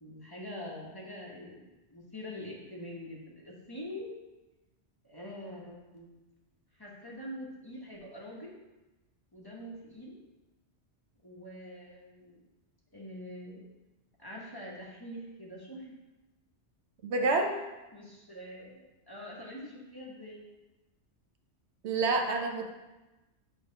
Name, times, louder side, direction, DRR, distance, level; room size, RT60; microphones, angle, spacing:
voice 1, 0.0-4.1 5.0-6.1 6.7-8.6 9.3-10.2 11.2-12.4 12.9-13.6 14.2-15.9 17.9-18.7 19.1-20.4, left 1 dB, 20° left, -4 dB, 1.1 m, -44 dB
voice 2, 17.0-17.6 21.8-22.7, right 3 dB, 75° right, 4 dB, 1.0 m, -28 dB
7.9 x 3.2 x 5.2 m, 1.1 s
omnidirectional pair, 1.2 m